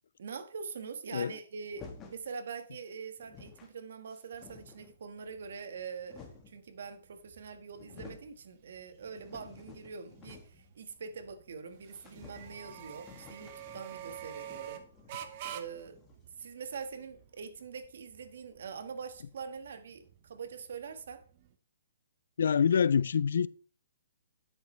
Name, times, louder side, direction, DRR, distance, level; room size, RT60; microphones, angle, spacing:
voice 1, 0.2-14.8 15.5-16.0 16.4-21.2, right 5 dB, 70° right, 1.5 m, -44 dB
sound 1, 1.7-2.3 2.9-3.0 3.2-3.7 4.1-5.0 5.7-6.6 7.4-7.5 7.7-8.3 8.7-10.7 11.0-11.1 11.4-11.5 11.9-16.4, left 5 dB, 20° left, 1.5 m, -53 dB
sound 2, 4.3-21.5, right 11 dB, 40° right, 0.9 m, -50 dB
voice 2, 22.4-23.5, left 7 dB, 75° left, 0.4 m, -26 dB
9.7 x 8.2 x 3.2 m
hypercardioid pair, 150°, 0 cm